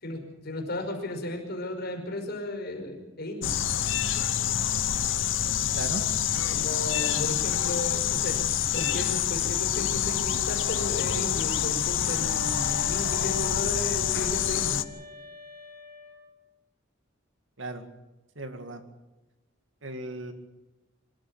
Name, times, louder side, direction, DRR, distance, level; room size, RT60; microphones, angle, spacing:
voice 1, 0.0-3.5 6.5-8.4 8.7-14.8, left 1 dB, 55° left, 2 dB, 5.3 m, -34 dB
sound 1, 3.4-14.8, left 10 dB, 80° left, 0.9 m, -27 dB
sound 2, 12.2-16.4, left 3 dB, 50° right, 4.3 m, -46 dB
voice 2, 18.4-18.8 19.8-20.3, right 2 dB, 80° right, 8 dB, 2.2 m, -36 dB
24.5 x 14.5 x 8.8 m, 1.0 s
head